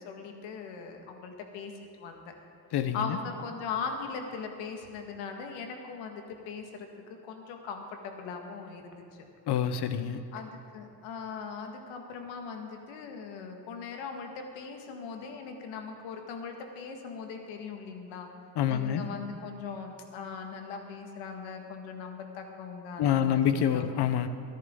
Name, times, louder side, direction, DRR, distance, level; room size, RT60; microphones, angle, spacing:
voice 1, 0.0-2.2 2.9-6.9 7.3-9.2 10.3-18.3 18.7-23.9, left 5 dB, 85° left, 3 dB, 2.0 m, -40 dB
voice 2, 2.7-3.2 9.5-10.2 18.6-19.1 23.0-24.3, left 9 dB, 65° left, 10 dB, 1.1 m, -27 dB
22.5 x 10.5 x 3.9 m, 2.5 s
cardioid pair, 85°, 44 cm